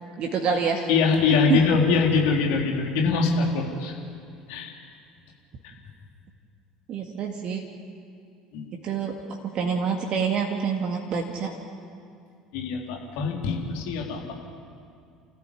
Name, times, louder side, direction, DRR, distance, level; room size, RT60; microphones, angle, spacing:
voice 1, 0.2-0.9 1.5-1.6 6.9-7.6 8.8-11.5, right 6 dB, 45° right, 2 dB, 2.1 m, -26 dB
voice 2, 0.9-3.9 4.5-4.7 5.6-5.7 8.5-8.8 12.5-14.3, left 5 dB, 60° left, 0 dB, 3.7 m, -23 dB
29.5 x 14.5 x 8.5 m, 2.4 s
figure-of-eight pair, 65°, 2 cm